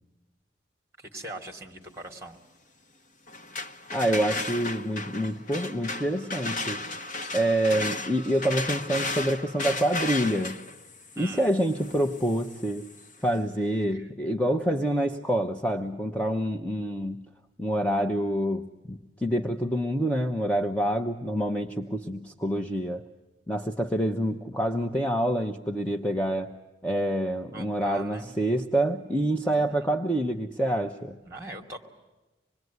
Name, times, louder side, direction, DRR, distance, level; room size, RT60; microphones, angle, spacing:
voice 1, 1.0-2.4 11.2-11.5 13.9-14.1 27.5-28.3 29.4-29.9 31.2-31.8, right 2 dB, 15° right, 4 dB, 2.8 m, -41 dB
sound 1, 3.3-13.1, left 2 dB, 45° left, 1.1 m, -35 dB
voice 2, 3.9-6.8 7.3-10.6 11.2-12.9 13.2-17.2 17.6-23.0 23.5-26.5 26.8-31.2, right 1 dB, 5° left, 3 dB, 0.9 m, -27 dB
26.0 x 21.0 x 9.4 m, 1.1 s
head